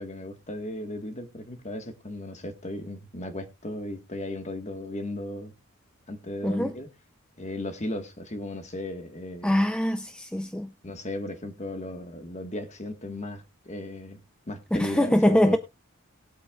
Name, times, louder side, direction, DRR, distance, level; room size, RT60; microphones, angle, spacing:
voice 1, 0.0-5.5 6.1-6.9 7.4-9.6 10.8-15.6, left 1 dB, 35° left, 1.5 m, -36 dB
voice 2, 6.4-6.7 9.4-10.7 14.7-15.6, left 1 dB, 5° left, 0.5 m, -23 dB
19.5 x 8.3 x 2.4 m
head